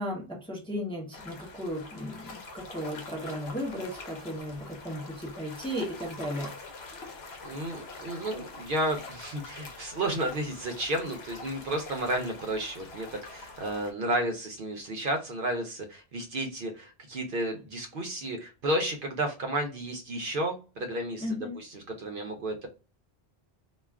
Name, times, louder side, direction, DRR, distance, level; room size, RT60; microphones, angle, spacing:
voice 1, 0.0-6.5 21.2-21.6, equal, 5° left, -1 dB, 0.6 m, -35 dB
sound 1, 1.1-13.9, left 3 dB, 85° left, 0.9 m, -45 dB
voice 2, 7.4-22.7, right 1 dB, 60° right, 4 dB, 0.7 m, -32 dB
2.3 x 2.3 x 3.3 m, 0.33 s
omnidirectional pair, 1.0 m